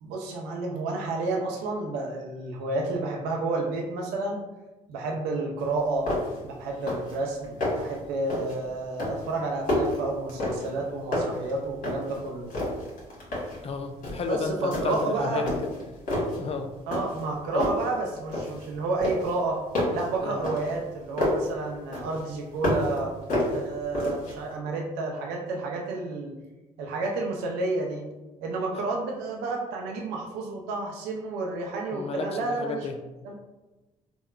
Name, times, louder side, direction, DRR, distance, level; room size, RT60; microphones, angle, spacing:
voice 1, 0.0-4.4 4.9-6.1 6.4-12.5 14.3-15.5 16.9-19.6 19.9-23.1 23.5-26.3 26.8-28.1 28.4-32.9 33.2-33.4, right 3 dB, 80° right, 0 dB, 0.5 m, -30 dB
sound 1, 5.6-5.7 6.1-6.5 6.7-7.2 7.4-7.9 8.3-8.6 9.0-10.8 11.1-12.2 12.5-13.6 14.0-14.3 14.7-15.1 15.5-16.4 16.9-17.3 17.6-18.7 19.0-21.5 21.9-23.0 23.3-24.4, left 1 dB, 55° left, 1.4 m, -29 dB
voice 2, 13.6-15.5 16.4-16.7 17.5-17.7 20.2-20.4 31.9-33.0, left 4 dB, 40° left, 6 dB, 0.4 m, -32 dB
3.5 x 2.1 x 2.3 m, 1.1 s
hypercardioid pair, 55°, 17 cm